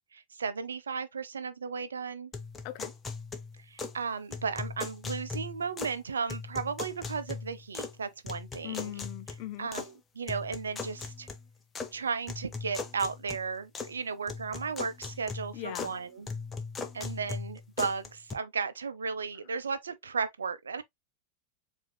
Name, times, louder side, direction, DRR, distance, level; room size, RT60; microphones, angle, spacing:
voice 1, 0.1-2.3 3.6-8.9 9.6-11.3 11.9-16.3 16.9-20.8, right 5 dB, 70° right, 0.6 m, -35 dB
sound 1, 2.3-4.0 4.3-6.0 6.3-8.0 8.3-9.9 10.3-11.9 12.3-14.0 14.3-16.0 16.3-18.3, left 4 dB, 15° left, 0.8 m, -39 dB
voice 2, 8.6-9.7 15.5-15.9, left 14 dB, 45° left, 0.6 m, -39 dB
7.6 x 2.7 x 2.2 m
figure-of-eight pair, 90°, 0 cm